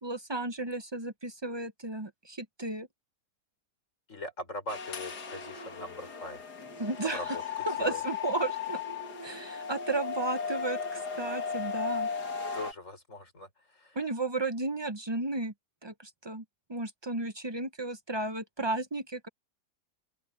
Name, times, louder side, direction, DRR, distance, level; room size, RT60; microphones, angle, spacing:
voice 1, 0.0-2.9 6.8-7.4 7.7-8.8 9.2-12.1 13.9-15.5 15.8-16.4 16.7-19.3, right 2 dB, 30° right, 0.5 m, -34 dB
voice 2, 4.1-6.5 7.0-8.0 12.5-14.0, left 1 dB, 45° left, 6.5 m, -41 dB
sound 1, 4.7-12.7, left 6 dB, 70° left, 2.5 m, -36 dB
open air
omnidirectional pair, 1.8 m